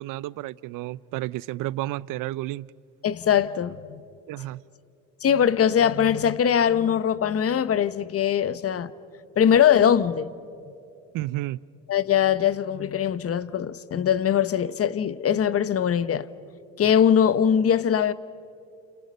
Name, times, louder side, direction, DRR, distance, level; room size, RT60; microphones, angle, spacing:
voice 1, 0.0-2.7 4.3-4.6 11.1-11.6, right 16 dB, 75° right, 0.6 m, -31 dB
voice 2, 3.0-4.0 5.2-8.9 9.4-10.3 11.9-16.3 16.8-18.1, left 8 dB, 45° left, 1.0 m, -21 dB
30.0 x 29.0 x 5.5 m
supercardioid pair, 80°, 33 cm